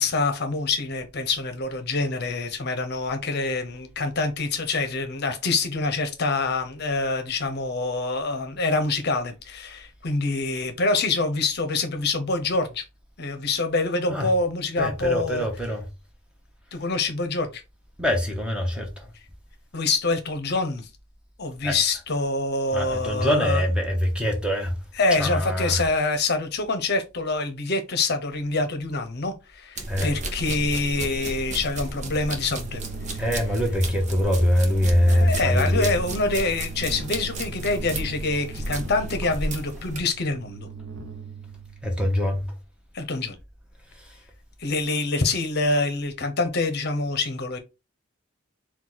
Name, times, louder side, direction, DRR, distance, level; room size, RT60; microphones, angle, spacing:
voice 1, 0.0-12.8 13.2-15.4 16.7-17.6 19.7-20.9 21.4-23.6 25.0-32.8 33.1-33.2 35.1-40.7 42.9-43.4 44.6-47.6, left 3 dB, 50° left, 0.7 m, -26 dB
voice 2, 14.8-15.9 18.0-19.1 21.6-21.8 22.7-24.8 25.1-25.8 29.9-30.1 33.2-35.9 41.8-42.5 43.9-44.2, equal, 5° right, 0.9 m, -23 dB
sound 1, 29.8-40.0, right 2 dB, 35° right, 0.7 m, -33 dB
sound 2, 31.7-42.3, right 5 dB, 70° right, 0.7 m, -41 dB
4.5 x 2.3 x 3.9 m
head